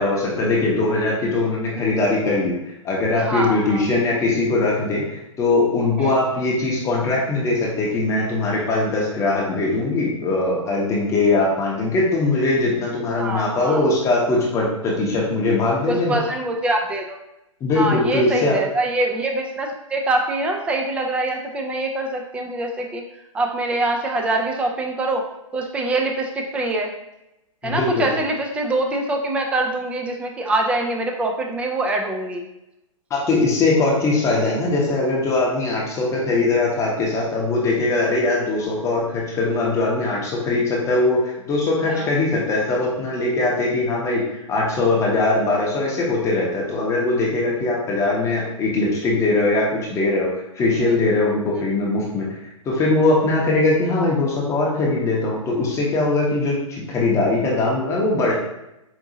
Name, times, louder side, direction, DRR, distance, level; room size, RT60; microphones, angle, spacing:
voice 1, 0.0-2.5 2.8-16.2 17.6-18.6 27.6-28.1 33.1-44.2 44.5-52.3 52.6-58.3, left 2 dB, 15° left, -3 dB, 0.8 m, -21 dB
voice 2, 3.1-3.9 6.0-6.2 13.2-13.9 15.9-17.2 17.8-23.0 23.3-25.2 25.5-26.9 27.6-32.4 36.4-36.5 41.9-42.1 50.8-51.0 51.6-51.7, right 2 dB, 5° right, 2 dB, 0.4 m, -24 dB
4.9 x 2.6 x 2.7 m, 0.88 s
hypercardioid pair, 130°, 17 cm